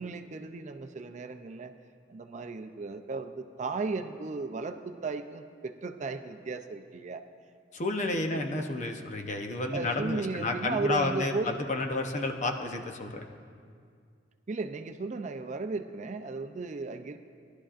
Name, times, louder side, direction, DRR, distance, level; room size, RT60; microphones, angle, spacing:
voice 1, 0.0-1.7 2.1-7.2 8.1-8.4 9.7-11.6 14.5-17.2, right 3 dB, 40° right, 8 dB, 0.4 m, -35 dB
voice 2, 7.7-13.2, left 2 dB, 40° left, 4 dB, 0.7 m, -31 dB
18.0 x 11.5 x 2.5 m, 2.2 s
head